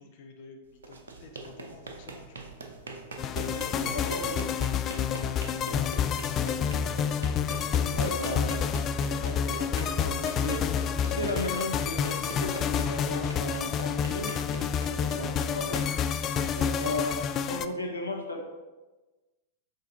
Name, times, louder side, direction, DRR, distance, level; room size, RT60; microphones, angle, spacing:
voice 1, 0.0-2.5 3.6-5.1 14.2-14.4 14.7-15.7, left 4 dB, 50° left, 3 dB, 0.7 m, -50 dB
sound 1, 0.7-17.7, right 3 dB, 75° right, 0.9 m, -43 dB
sound 2, 3.2-17.7, left 7 dB, 30° left, 0.3 m, -29 dB
voice 2, 3.3-4.5 5.7-5.9 7.9-8.7 9.0-10.7 11.0-14.3 14.8-15.8 16.5-17.2 17.5-18.4, left 1 dB, 85° left, 1 dB, 0.9 m, -35 dB
6.5 x 4.0 x 4.0 m, 1.2 s
figure-of-eight pair, 95°, 0 cm